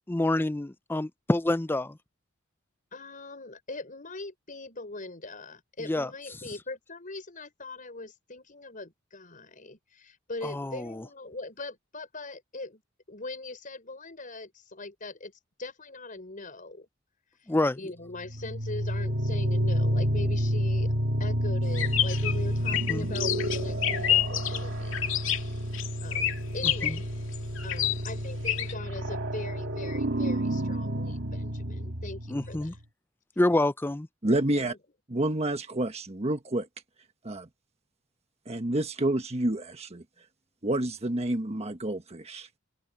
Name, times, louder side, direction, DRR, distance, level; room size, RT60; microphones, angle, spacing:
voice 1, 0.1-1.9 5.9-6.1 10.4-11.0 17.5-17.8 22.9-23.1 26.8-26.9 32.3-32.7 33.4-34.1, left 1 dB, 10° left, 0.5 m, -27 dB
voice 2, 2.9-12.8 13.1-16.9 17.3-17.5 17.8-20.9 21.2-25.1 26.0-27.1 27.6-32.8 34.6-34.8, left 2 dB, 45° left, 5.9 m, -41 dB
sound 1, 18.1-32.8, equal, 65° right, 2.1 m, -30 dB
sound 2, 21.7-28.7, left 11 dB, 75° left, 2.4 m, -29 dB
voice 3, 34.2-34.7 35.1-36.7 37.2-37.5 38.5-40.0 40.6-42.5, right 1 dB, 35° right, 1.4 m, -29 dB
head